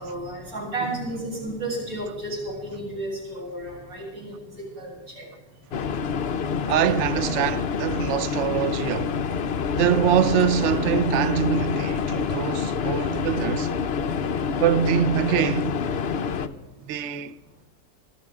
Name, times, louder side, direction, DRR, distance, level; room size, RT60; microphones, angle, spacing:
voice 1, 0.0-4.9 5.2-5.3, right 1 dB, 80° right, 8.4 m, -32 dB
sound 1, 5.7-16.5, left 6 dB, 65° left, 0.6 m, -27 dB
voice 2, 6.7-9.2 9.7-13.7 14.5-15.8 16.9-17.4, right 9 dB, 60° right, 0.8 m, -24 dB
26.5 x 13.5 x 3.6 m
omnidirectional pair, 2.0 m